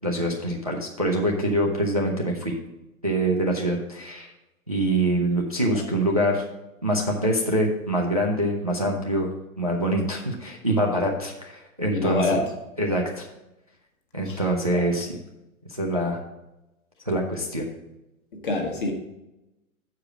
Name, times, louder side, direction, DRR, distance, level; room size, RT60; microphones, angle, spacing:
voice 1, 0.0-2.5 3.0-4.3 4.7-6.5 6.8-9.3 9.6-12.4 12.8-13.3 14.1-15.2 15.7-16.2 17.1-17.7, right 1 dB, 30° right, 0 dB, 0.4 m, -25 dB
voice 2, 11.9-12.4 14.3-14.4 14.7-14.8 18.4-18.9, left 3 dB, 35° left, 2 dB, 1.3 m, -26 dB
7.5 x 4.8 x 5.9 m, 0.94 s
hypercardioid pair, 180°, 43 cm